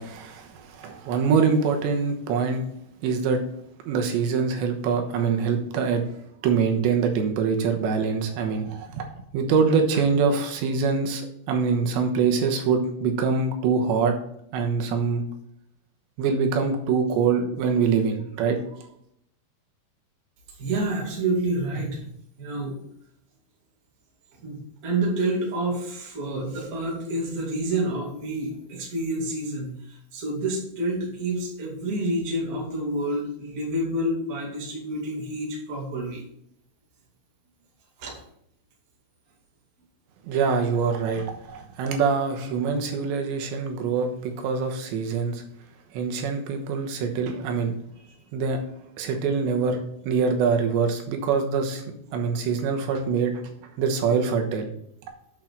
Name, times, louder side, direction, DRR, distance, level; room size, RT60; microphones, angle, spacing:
voice 1, 0.0-2.6 3.0-3.4 3.9-6.0 6.4-9.1 9.3-14.1 14.5-15.2 16.2-18.9 40.2-45.4 45.9-47.7 48.3-48.6 49.0-49.8 50.0-53.4 53.8-54.7, right 5 dB, 90° right, 3 dB, 3.4 m, -24 dB
voice 2, 20.6-22.0 22.4-22.8 24.4-36.2 38.0-38.2, right 1 dB, 35° right, -2 dB, 1.6 m, -28 dB
8.8 x 5.9 x 4.6 m, 0.71 s
omnidirectional pair, 5.0 m